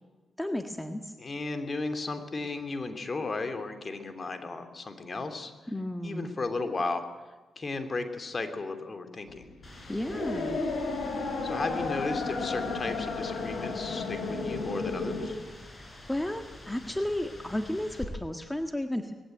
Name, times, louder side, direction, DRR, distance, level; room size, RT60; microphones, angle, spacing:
voice 1, 0.4-1.1 5.7-6.4 9.9-10.6 15.8-19.1, left 1 dB, 10° left, 6 dB, 1.7 m, -33 dB
voice 2, 1.2-5.5 6.0-7.0 7.6-9.5 11.4-15.4, left 3 dB, 45° left, 7 dB, 2.8 m, -34 dB
sound 1, 9.3-15.3, left 3 dB, 85° left, 4.1 m, -33 dB
sound 2, 9.6-18.0, left 2 dB, 25° left, 5.6 m, -47 dB
20.0 x 15.5 x 9.2 m, 1.2 s
cardioid pair, 55°, 0 cm